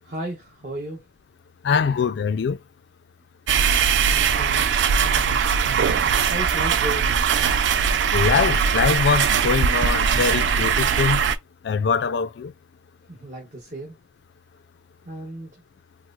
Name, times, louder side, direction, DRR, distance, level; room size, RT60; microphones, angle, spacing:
voice 1, 0.0-1.0 4.0-5.4 6.3-7.3 13.1-14.0 15.0-15.6, right 1 dB, 40° right, 1.0 m, -35 dB
voice 2, 1.6-2.6 8.1-11.2 11.6-12.5, left 6 dB, 65° left, 0.3 m, -23 dB
sound 1, 3.5-11.3, right 7 dB, 70° right, 0.3 m, -20 dB
4.5 x 2.0 x 2.3 m
head